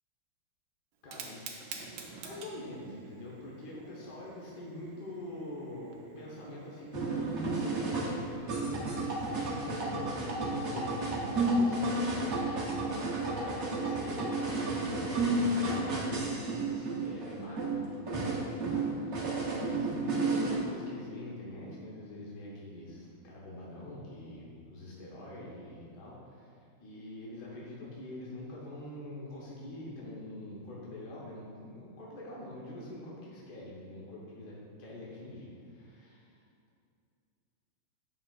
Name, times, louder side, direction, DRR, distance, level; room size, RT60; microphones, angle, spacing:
Fire, 0.9-9.8, right 4 dB, 70° right, 1.4 m, -50 dB
voice 1, 1.0-1.4 2.2-36.4, left 1 dB, 55° left, -5 dB, 1.5 m, -45 dB
sound 1, 6.9-20.6, right 2 dB, 45° right, 1.0 m, -32 dB
9.3 x 5.9 x 2.4 m, 2.3 s
omnidirectional pair, 2.3 m